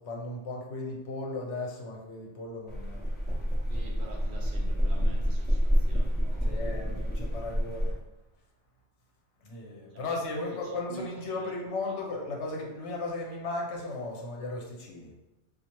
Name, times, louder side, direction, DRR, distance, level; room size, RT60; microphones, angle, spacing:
voice 1, 0.0-3.1 6.4-8.0 9.4-15.1, left 2 dB, 80° left, -1 dB, 1.1 m, -36 dB
sound 1, 2.7-7.9, equal, 15° left, 0.5 m, -28 dB
voice 2, 3.7-6.7 9.9-11.5 11.8-12.0, right 2 dB, 55° right, -1 dB, 0.7 m, -47 dB
3.8 x 2.4 x 2.9 m, 1.0 s
omnidirectional pair, 1.1 m